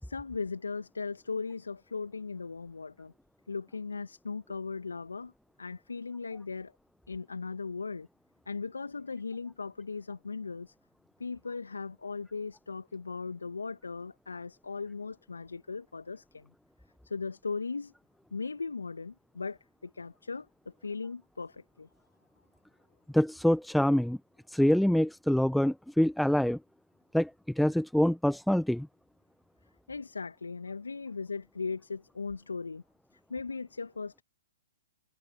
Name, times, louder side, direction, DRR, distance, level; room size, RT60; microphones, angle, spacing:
voice 1, 0.0-3.1 3.5-5.3 5.6-6.7 7.1-8.1 8.4-10.7 11.2-16.5 17.0-17.9 18.3-21.9 29.9-32.8 33.1-34.2, left 4 dB, 80° left, 1.5 m, -38 dB
voice 2, 23.1-24.2 24.5-26.6 27.1-28.9, equal, ahead, 0.9 m, -25 dB
figure-of-eight pair, 120°, 0 cm